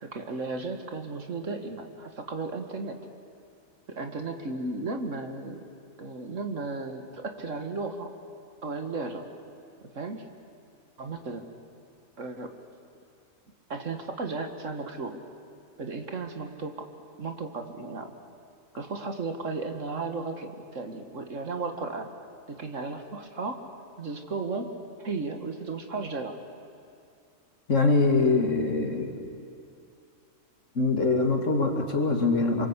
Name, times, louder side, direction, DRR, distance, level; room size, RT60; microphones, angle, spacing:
voice 1, 0.0-3.0 3.9-5.7 6.0-8.1 8.6-9.2 9.9-10.2 11.0-11.4 12.2-12.5 13.7-15.2 15.8-16.8 17.2-18.1 18.8-22.1 22.5-23.6 24.0-26.4, right 3 dB, 60° right, 5 dB, 2.1 m, -34 dB
voice 2, 27.7-29.2 30.7-32.7, left 3 dB, 60° left, 4 dB, 2.6 m, -23 dB
27.5 x 24.0 x 8.3 m, 2.5 s
omnidirectional pair, 1.4 m